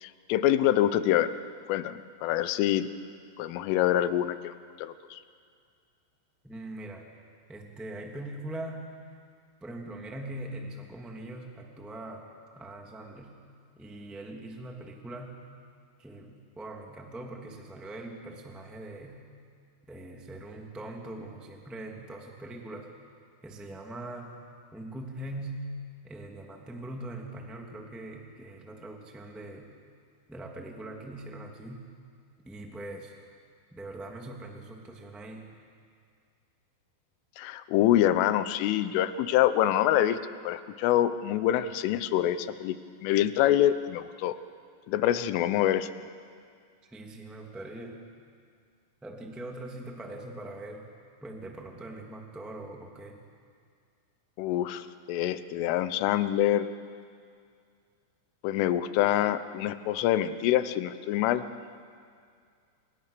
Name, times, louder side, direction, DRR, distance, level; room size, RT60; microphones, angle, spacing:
voice 1, 0.0-1.3 1.7-2.9 3.4-5.2 37.4-40.2 40.5-42.8 43.0-44.4 44.9-45.9 54.4-56.7 58.4-61.4, left 12 dB, 85° left, 12 dB, 3.5 m, -26 dB
voice 2, 6.4-7.1 7.5-8.9 9.6-12.2 12.5-13.3 13.7-15.3 16.0-19.2 19.9-22.9 23.4-24.3 24.7-25.7 26.0-29.7 30.3-31.8 32.4-33.1 33.7-35.4 46.9-48.0 49.0-50.9 51.2-53.2, right 1 dB, ahead, 1 dB, 0.6 m, -41 dB
29.5 x 28.5 x 6.9 m, 2.2 s
omnidirectional pair, 5.6 m